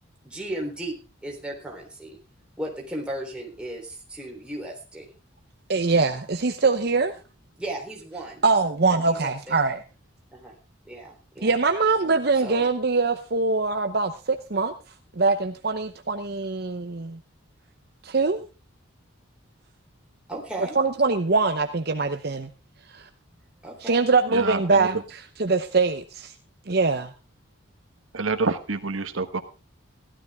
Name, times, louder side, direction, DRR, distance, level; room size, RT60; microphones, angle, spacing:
voice 1, 0.2-0.9 1.2-2.2 2.6-5.1 7.6-8.4 9.1-9.6 10.3-10.5 10.9-11.5 12.4-12.7 20.3-20.8 23.0-23.1 23.6-24.0, right 1 dB, 5° right, -1 dB, 3.6 m, -35 dB
voice 2, 5.7-7.1 8.4-9.8 11.4-14.7 15.2-17.2 18.0-18.5 20.8-22.5 22.9-23.1 23.8-25.0 25.4-26.3 26.7-27.1, right 4 dB, 50° right, 7 dB, 0.8 m, -23 dB
voice 3, 24.3-24.9 28.1-29.4, right 3 dB, 90° right, 8 dB, 1.3 m, -27 dB
16.0 x 12.5 x 3.5 m, 0.32 s
head